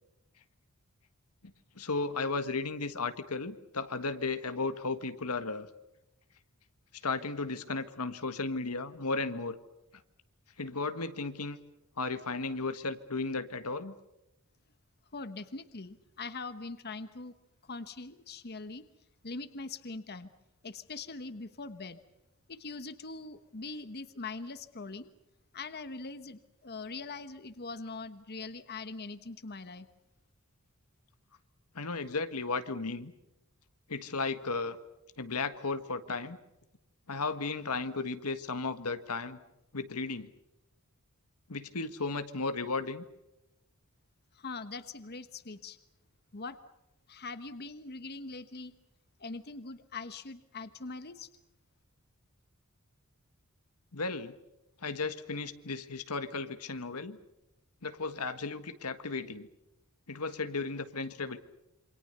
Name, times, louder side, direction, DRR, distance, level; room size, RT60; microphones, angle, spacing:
voice 1, 1.8-5.7 7.0-9.6 10.6-11.6 12.0-13.9 31.7-33.1 33.9-34.8 35.2-36.4 37.1-39.4 39.7-40.3 41.5-43.0 53.9-54.3 54.8-57.2 57.8-59.5 60.1-61.4, left 3 dB, 90° left, 10 dB, 1.6 m, -34 dB
voice 2, 15.1-17.3 17.6-18.9 19.2-20.3 20.6-22.0 22.5-25.1 25.5-29.9 44.3-45.8 46.3-46.6 47.1-48.7 49.2-51.3, left 3 dB, 45° left, 11 dB, 1.2 m, -42 dB
28.0 x 25.0 x 6.8 m, 0.92 s
head